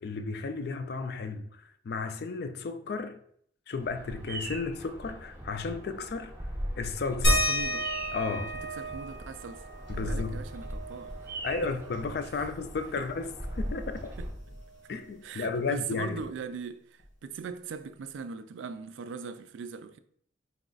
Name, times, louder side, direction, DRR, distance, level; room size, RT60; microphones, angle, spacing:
voice 1, 0.0-3.2 3.7-6.3 6.8-7.5 8.1-8.6 9.9-10.4 11.4-14.1 14.9-16.2, left 4 dB, 55° left, 0.3 m, -33 dB
Bird vocalization bird call bird song, 3.8-14.3, right 1 dB, 10° right, 0.6 m, -39 dB
sound 1, 7.2-12.4 12.7-12.8 13.2-14.9 16.2-16.3 17.0-17.1, equal, 90° left, 1.2 m, -33 dB
voice 2, 7.5-7.9 8.8-9.7 9.9-11.1 11.6-11.7 13.0-13.1 14.2-14.3 15.2-20.0, right 5 dB, 75° right, 0.3 m, -40 dB
4.0 x 2.4 x 3.8 m
head